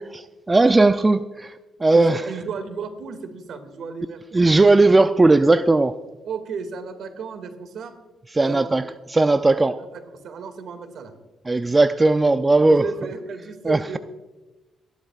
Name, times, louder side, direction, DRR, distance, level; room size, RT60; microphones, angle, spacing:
voice 1, 0.0-1.5 1.8-2.2 4.3-5.9 8.3-8.8 9.1-9.8 11.5-12.8 13.6-14.0, right 2 dB, 20° right, 10 dB, 0.4 m, -17 dB
voice 2, 1.9-4.5 6.2-7.9 8.4-8.8 9.7-11.1 12.5-14.0, right 5 dB, 70° right, 6 dB, 2.2 m, -34 dB
27.5 x 11.5 x 2.4 m, 1.1 s
cardioid pair, 90°, 0 cm